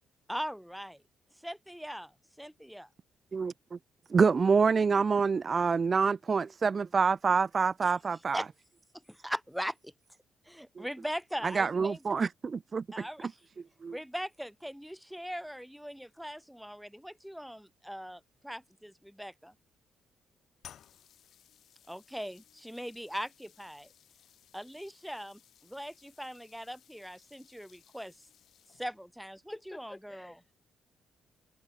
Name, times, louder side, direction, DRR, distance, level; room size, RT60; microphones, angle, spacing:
voice 1, 0.3-1.0 1.4-2.1 2.4-2.9 7.8-8.0 8.3-8.5 9.1-9.9 10.4-12.0 12.9-13.3 13.9-19.5 21.9-23.9 24.5-28.1 28.8-30.3, equal, ahead, 2.5 m, -40 dB
voice 2, 3.3-3.8 4.1-8.4 10.8-10.9 11.4-12.8 13.8-14.0, right 5 dB, 35° right, 0.4 m, -27 dB
sound 1, 20.6-29.2, left 10 dB, 65° left, 2.7 m, -59 dB
voice 3, 29.5-30.5, left 2 dB, 15° left, 3.7 m, -48 dB
cardioid pair, 90°, 0 cm